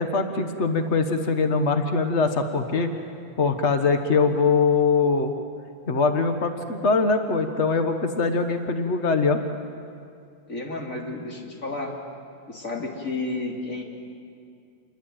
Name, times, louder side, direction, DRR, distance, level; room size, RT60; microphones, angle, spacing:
voice 1, 0.0-2.9 3.4-5.3 5.9-9.4, left 4 dB, 85° left, 7 dB, 0.6 m, -22 dB
voice 2, 10.5-11.9 12.5-13.8, left 2 dB, 25° left, 0 dB, 3.2 m, -31 dB
28.0 x 21.5 x 9.1 m, 2.3 s
omnidirectional pair, 3.5 m